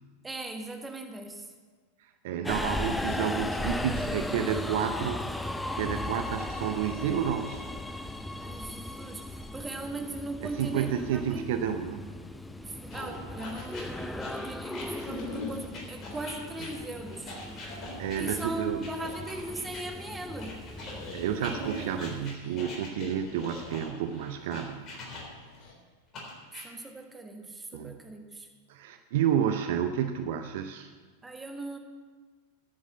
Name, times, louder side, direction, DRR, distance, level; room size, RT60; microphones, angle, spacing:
voice 1, 0.2-1.4 8.4-11.5 12.7-17.4 18.2-20.6 21.4-21.9 26.5-28.5 31.2-31.8, right 2 dB, 10° right, 4 dB, 1.5 m, -39 dB
voice 2, 2.2-7.7 10.4-12.1 18.0-18.8 21.1-25.0 27.7-28.0 28.7-30.9, right 9 dB, 50° right, 9 dB, 0.5 m, -30 dB
Subway metro underground, 2.4-22.3, left 1 dB, 5° left, 0.5 m, -37 dB
sound 1, 12.9-19.8 20.4-25.6 26.1-26.6, left 2 dB, 30° left, 3.7 m, -42 dB
Dog, 14.9-25.7, left 1 dB, 45° left, 2.7 m, -47 dB
10.5 x 7.6 x 8.5 m, 1.4 s
figure-of-eight pair, 90°, 0 cm